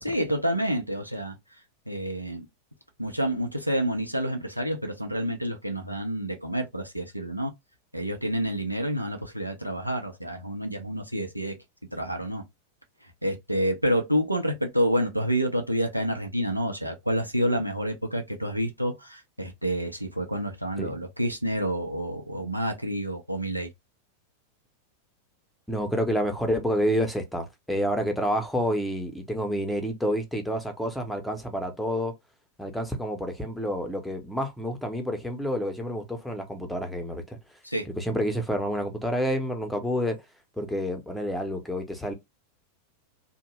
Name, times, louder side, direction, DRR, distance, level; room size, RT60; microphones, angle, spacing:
voice 1, 0.0-1.3 1.9-2.5 3.0-7.5 7.9-11.5 11.9-12.4 13.2-23.7 37.6-37.9, equal, 90° right, 0.6 m, -28 dB
voice 2, 25.7-32.1 32.6-37.4 38.0-40.2 40.6-42.1, equal, ahead, 0.7 m, -29 dB
2.6 x 2.1 x 3.0 m
figure-of-eight pair, 90°, 0 cm